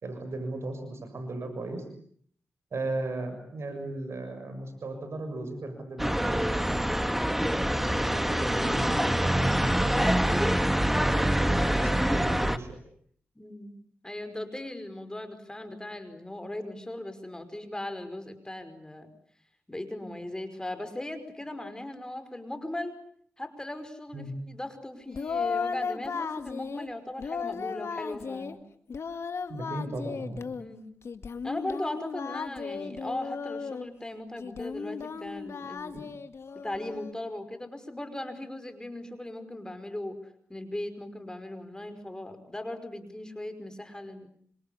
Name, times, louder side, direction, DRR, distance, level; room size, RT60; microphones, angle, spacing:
voice 1, 0.0-1.8 2.7-6.8 7.6-10.2 11.1-12.8 24.1-24.3 29.5-30.5, right 2 dB, 65° right, 7 dB, 6.7 m, -36 dB
sound 1, 6.0-12.6, equal, 5° right, 1.8 m, -25 dB
voice 2, 13.4-13.8 14.0-19.1 19.7-22.9 23.4-28.6 30.6-30.9 31.4-36.1 36.6-40.2 40.5-44.3, left 1 dB, 15° left, 9 dB, 5.3 m, -38 dB
Singing, 25.1-26.9 27.2-28.6 28.9-30.6 31.1-33.9 34.4-37.1, left 5 dB, 70° left, 2.0 m, -35 dB
27.0 x 26.0 x 8.5 m, 0.62 s
cardioid pair, 65°, 5 cm